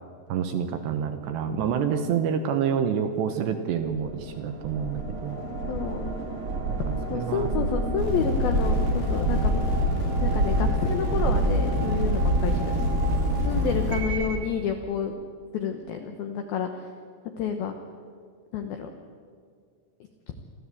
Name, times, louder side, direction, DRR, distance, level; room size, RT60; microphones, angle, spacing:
voice 1, 0.3-5.4 6.7-7.5 13.6-13.8, right 7 dB, 75° right, 7 dB, 2.8 m, -28 dB
sound 1, 3.9-14.5, right 3 dB, 45° right, 1.8 m, -29 dB
voice 2, 5.7-6.1 7.1-9.6 10.2-12.8 13.5-15.1 15.5-16.9 17.4-17.7 18.5-18.9 20.3-20.4, left 7 dB, 80° left, 5 dB, 2.1 m, -30 dB
sound 2, 8.0-14.0, left 1 dB, 55° left, 6.4 m, -27 dB
27.0 x 13.5 x 8.4 m, 2.1 s
omnidirectional pair, 5.8 m